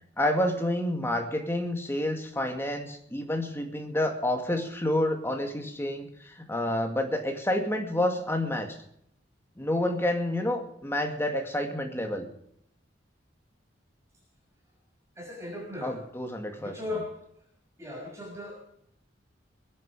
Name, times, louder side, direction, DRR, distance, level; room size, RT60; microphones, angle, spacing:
voice 1, 0.2-8.8 9.6-12.3 15.8-16.8, left 1 dB, 15° left, 4 dB, 2.2 m, -29 dB
voice 2, 15.2-16.0 16.6-17.2 17.8-18.6, left 2 dB, 15° right, -4 dB, 6.2 m, -37 dB
22.0 x 11.0 x 4.9 m, 0.71 s
head